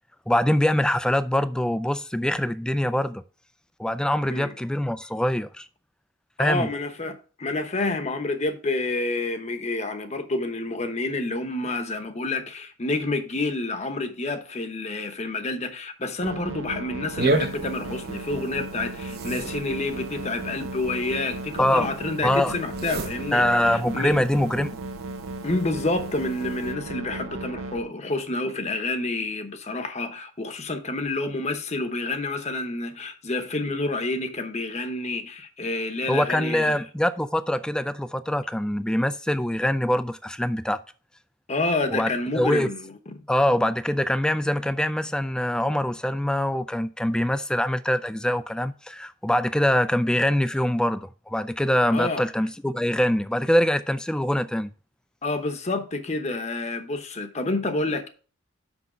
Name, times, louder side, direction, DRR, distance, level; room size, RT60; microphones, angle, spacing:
voice 1, 0.3-3.2 3.8-5.7 6.4-6.7 21.6-21.9 22.2-22.5 23.3-24.7 36.1-40.8 41.9-42.1 42.3-42.7 43.3-54.7, left 1 dB, 5° left, 0.3 m, -24 dB
voice 2, 6.4-24.2 25.4-36.8 41.5-43.1 51.9-52.2 55.2-58.1, left 2 dB, 35° left, 0.9 m, -29 dB
sound 1, 16.2-27.8, right 2 dB, 85° right, 0.8 m, -36 dB
sound 2, 17.2-26.7, right 2 dB, 50° right, 0.9 m, -34 dB
6.2 x 5.7 x 5.0 m
head